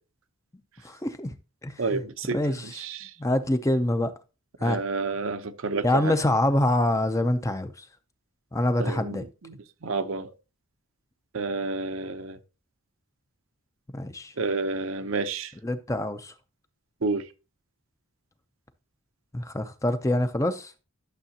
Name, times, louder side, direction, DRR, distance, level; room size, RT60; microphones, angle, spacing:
voice 1, 0.8-1.3 1.6-2.0 2.3-2.9 3.2-4.1 4.6-4.8 5.8-7.9 8.5-9.2 13.9-14.3 15.6-16.3 19.3-20.7, left 1 dB, 15° left, 0.5 m, -25 dB
voice 2, 1.8-2.4 2.8-3.1 4.6-6.2 8.8-10.3 11.3-12.4 14.4-15.5 17.0-17.3, right 3 dB, 65° right, 0.7 m, -30 dB
11.5 x 6.7 x 2.8 m
head